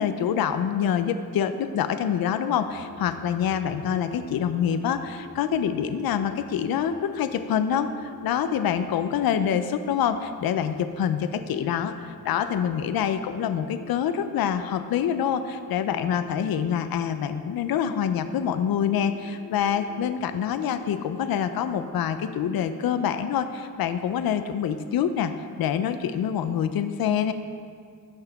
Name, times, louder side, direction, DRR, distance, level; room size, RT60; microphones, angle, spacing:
voice 1, 0.0-25.3 25.6-27.3, left 8 dB, 65° left, 10 dB, 0.5 m, -26 dB
sound 1, 2.6-22.3, left 3 dB, 35° left, 2.3 m, -45 dB
14.5 x 5.7 x 3.5 m, 2.1 s
wide cardioid pair, 155°, 39 cm